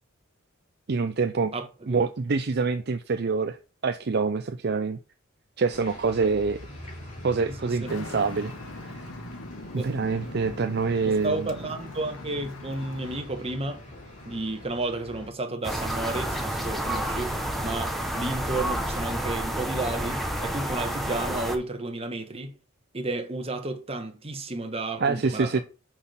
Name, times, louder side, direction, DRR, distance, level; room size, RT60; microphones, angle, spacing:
voice 1, 0.9-1.5 1.9-3.6 3.8-5.0 5.6-6.6 7.2-8.5 8.8-8.9 9.7-11.5 25.0-25.6, right 4 dB, 50° right, 0.5 m, -26 dB
voice 2, 1.5-2.0 7.5-7.9 9.8-9.9 11.0-13.8 14.2-17.3 17.6-22.5 22.9-25.6, right 2 dB, 30° right, 1.4 m, -32 dB
sound 1, 5.7-15.3, left 1 dB, 40° left, 3.1 m, -43 dB
Traffic noise roadway noise, 7.9-13.2, left 2 dB, 80° left, 1.3 m, -42 dB
sound 2, 15.6-21.6, right 1 dB, ahead, 1.2 m, -30 dB
6.1 x 5.7 x 6.9 m
head